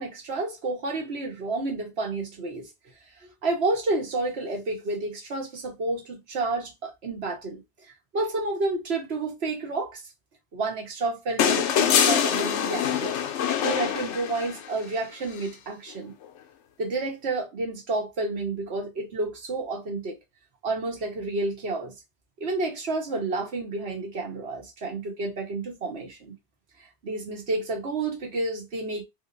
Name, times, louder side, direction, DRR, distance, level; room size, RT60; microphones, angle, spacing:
voice 1, 0.0-2.7 3.2-7.6 8.1-10.0 10.5-13.2 13.6-16.1 16.8-20.2 20.6-21.9 22.4-26.3 26.8-29.0, right 2 dB, 70° right, 1.4 m, -30 dB
sound 1, 11.4-14.7 16.2-16.3, left 8 dB, 85° left, 0.9 m, -24 dB
3.7 x 3.0 x 2.5 m
omnidirectional pair, 1.1 m